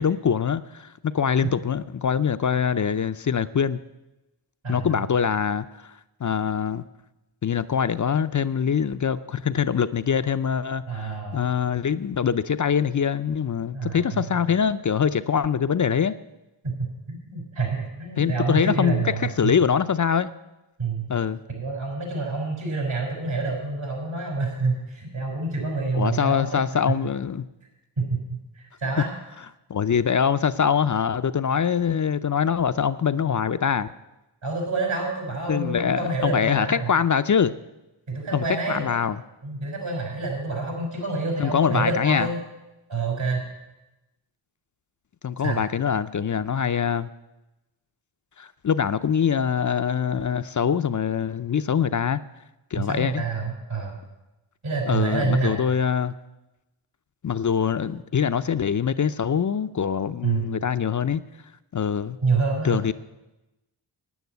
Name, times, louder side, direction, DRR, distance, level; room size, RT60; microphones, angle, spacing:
voice 1, 0.0-3.8 4.7-5.9 6.2-6.8 7.4-16.1 18.2-20.3 21.1-21.4 25.9-27.5 29.7-33.9 35.5-37.5 38.3-39.2 41.4-42.3 45.2-47.1 48.4-52.2 52.7-53.2 54.9-56.1 57.2-61.2 61.7-62.2 62.6-62.9, left 7 dB, 40° left, 12 dB, 0.5 m, -24 dB
voice 2, 4.6-5.0 10.9-11.5 13.7-14.4 16.6-19.5 20.8-21.1 21.5-26.6 26.9-27.0 28.0-29.1 34.4-36.9 38.1-38.8 39.4-42.4 42.9-43.4 45.4-45.6 52.7-54.0 54.6-55.6 60.2-60.5 62.2-62.8, right 3 dB, 70° right, 0 dB, 5.6 m, -27 dB
9.5 x 9.4 x 8.0 m, 1.0 s
cardioid pair, 45°, 49 cm